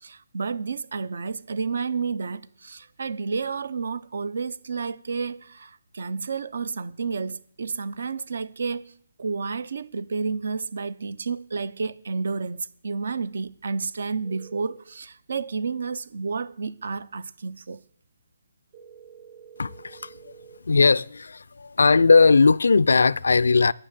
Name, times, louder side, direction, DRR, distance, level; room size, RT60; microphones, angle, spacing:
voice 1, 0.0-17.8, right 4 dB, 70° right, 0.6 m, -31 dB
sound 1, 14.2-14.8 18.7-20.6, right 7 dB, 35° right, 3.5 m, -48 dB
voice 2, 19.6-20.3 20.7-23.7, left 4 dB, 85° left, 0.3 m, -19 dB
10.0 x 6.4 x 7.5 m
hypercardioid pair, 160°, 0 cm